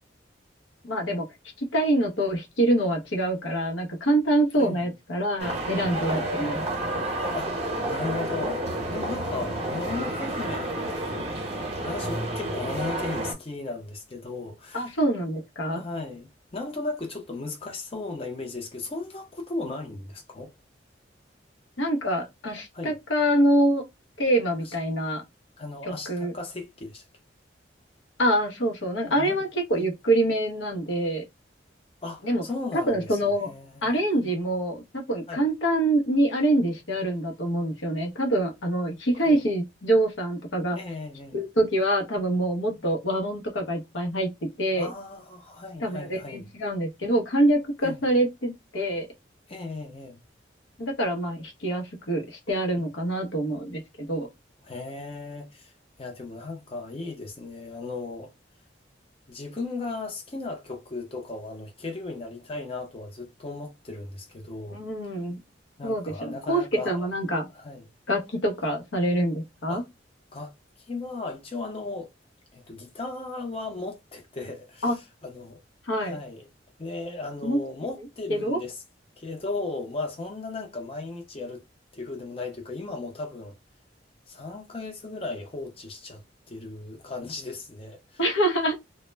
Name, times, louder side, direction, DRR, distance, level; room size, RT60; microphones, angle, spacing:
voice 1, 0.8-1.3 1.6-6.6 14.7-15.8 21.8-23.8 24.2-25.2 25.9-26.3 28.2-31.2 32.2-32.4 32.9-33.5 33.8-40.8 41.3-44.9 45.8-49.1 50.8-54.3 64.7-65.4 65.8-67.5 68.1-69.8 74.8-74.9 75.9-76.2 77.4-77.6 78.3-78.6 88.2-88.8, right 1 dB, 85° left, 0.7 m, -25 dB
sound 1, 5.4-13.3, right 1 dB, 35° right, 0.7 m, -30 dB
voice 2, 7.3-14.9 15.7-20.5 22.7-22.9 24.7-24.8 25.6-27.0 29.1-29.4 32.0-34.0 35.3-35.5 39.1-39.4 40.7-41.4 44.7-46.5 47.8-48.1 49.5-50.2 54.6-55.7 56.0-58.3 59.3-64.8 65.8-67.1 67.5-67.9 69.7-69.8 70.3-70.5 70.9-72.1 72.5-75.6 76.0-76.5 76.8-78.8 79.2-81.6 81.9-83.6 84.3-86.2 86.5-88.2, left 3 dB, 30° left, 0.5 m, -36 dB
2.1 x 2.0 x 3.2 m
head